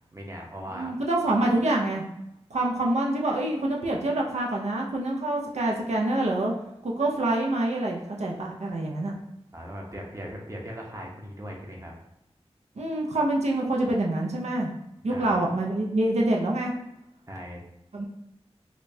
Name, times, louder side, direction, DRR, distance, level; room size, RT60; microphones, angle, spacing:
voice 1, 0.1-0.9 9.5-11.9 15.1-15.5 17.3-17.6, equal, 30° right, -1 dB, 0.8 m, -39 dB
voice 2, 0.8-2.0 2.5-6.5 6.8-9.1 12.8-14.7 15.0-16.7 17.9-18.1, right 1 dB, 90° right, -1 dB, 0.5 m, -26 dB
5.0 x 2.2 x 2.6 m, 0.84 s
wide cardioid pair, 65°, 11 cm